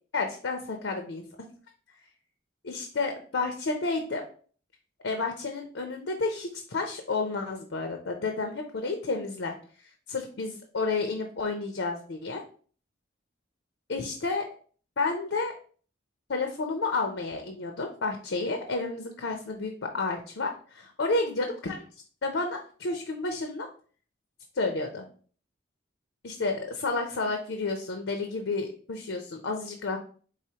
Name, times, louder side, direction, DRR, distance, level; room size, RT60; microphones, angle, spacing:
voice 1, 0.1-1.2 2.6-4.2 5.0-9.6 10.1-12.4 13.9-14.5 15.0-15.5 16.3-21.8 22.2-23.7 24.6-25.1 26.2-30.0, left 3 dB, 75° left, 4 dB, 0.6 m, -31 dB
4.8 x 3.6 x 2.8 m, 0.43 s
head